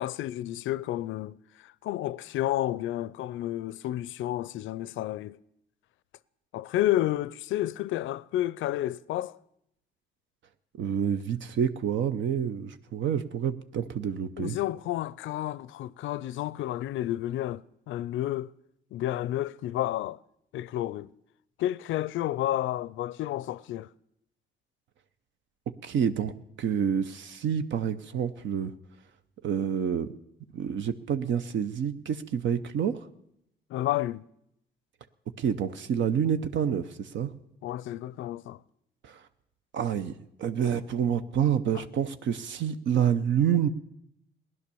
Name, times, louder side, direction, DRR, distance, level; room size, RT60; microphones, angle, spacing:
voice 1, 0.0-1.4 1.6-5.4 6.5-9.4 14.4-18.5 18.9-20.2 20.5-21.1 21.6-23.9 33.7-34.2 37.6-38.6, left 14 dB, 80° left, 0.5 m, -31 dB
voice 2, 10.8-14.6 25.8-26.3 26.6-28.7 29.4-30.1 30.5-33.1 35.4-37.3 39.0-39.2 39.7-40.1 40.4-43.7, right 8 dB, 70° right, 0.7 m, -28 dB
17.0 x 11.0 x 6.9 m
cardioid pair, 90°, 20 cm